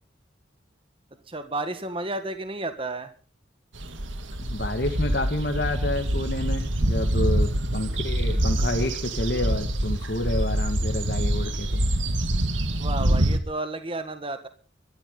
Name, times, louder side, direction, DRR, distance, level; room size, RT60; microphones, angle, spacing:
voice 1, 1.3-3.1 12.8-14.5, right 2 dB, 30° right, 9 dB, 1.7 m, -32 dB
sound 1, 3.7-13.4, right 1 dB, 80° right, 2.1 m, -25 dB
voice 2, 4.4-11.8, left 1 dB, 55° left, 3 dB, 1.9 m, -29 dB
23.5 x 13.5 x 3.9 m, 0.38 s
head